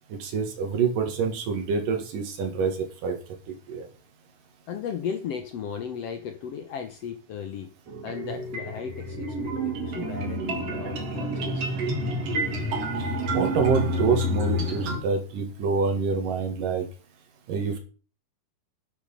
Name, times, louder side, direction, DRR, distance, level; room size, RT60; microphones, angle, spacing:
voice 1, 0.1-3.2 3.7-3.9 13.0-16.9 17.5-17.8, right 5 dB, 75° right, 4 dB, 3.6 m, -26 dB
voice 2, 4.7-7.7 8.0-11.6, left 7 dB, 65° left, 7 dB, 1.7 m, -35 dB
sound 1, 7.9-15.0, equal, 50° right, 3.0 m, -29 dB
10.0 x 6.6 x 5.6 m, 0.36 s
omnidirectional pair, 3.8 m